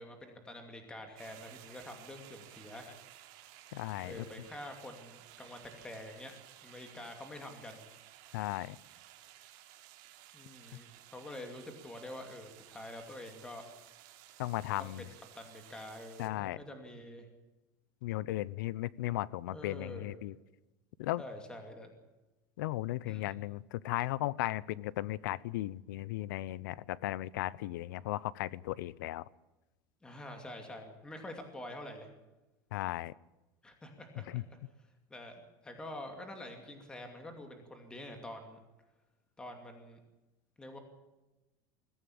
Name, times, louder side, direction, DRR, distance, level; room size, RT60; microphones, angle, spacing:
voice 1, 0.0-2.9 4.0-6.3 6.6-7.8 10.3-13.6 14.8-17.3 19.5-20.2 21.2-22.0 23.0-23.4 30.0-32.1 33.6-34.4 35.1-38.6 39.4-40.0 40.6-40.8, left 1 dB, 10° left, 4 dB, 2.5 m, -47 dB
sound 1, 1.2-16.3, right 13 dB, 50° right, 3.3 m, -56 dB
voice 2, 3.7-4.2 8.3-8.8 14.4-15.1 16.2-16.6 18.0-20.3 21.0-21.2 22.6-29.3 32.7-33.1 34.3-34.4, left 16 dB, 85° left, 21 dB, 0.8 m, -36 dB
21.5 x 15.0 x 8.7 m, 1.1 s
supercardioid pair, 170°, 10 cm